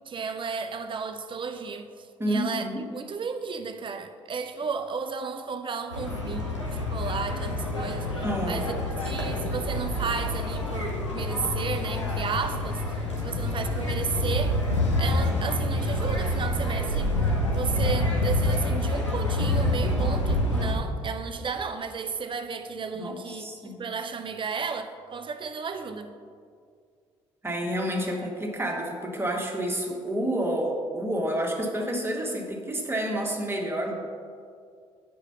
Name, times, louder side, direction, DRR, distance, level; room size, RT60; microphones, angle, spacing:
voice 1, 0.1-14.6 15.0-26.1, right 5 dB, 35° right, 0.7 m, -33 dB
voice 2, 2.2-2.8 8.2-8.9 9.4-9.5 22.9-23.8 27.4-33.9, right 1 dB, 15° right, 1.6 m, -29 dB
sound 1, 5.9-20.7, left 1 dB, 90° left, 0.9 m, -27 dB
8.8 x 4.9 x 5.6 m
figure-of-eight pair, 50°, 15 cm